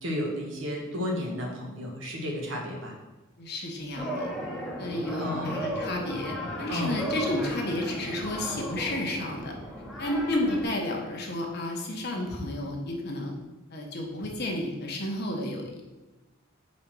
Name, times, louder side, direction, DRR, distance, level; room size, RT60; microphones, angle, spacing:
voice 1, 0.0-2.9 5.1-5.6 6.7-7.0, left 1 dB, 60° right, 0 dB, 1.4 m, -32 dB
voice 2, 3.4-4.3 4.8-9.5 10.0-13.3 13.7-15.8, left 1 dB, 50° left, 0 dB, 1.2 m, -31 dB
sound 1, 4.0-10.6, equal, ahead, 1.2 m, -35 dB
5.3 x 4.4 x 6.1 m, 1.1 s
head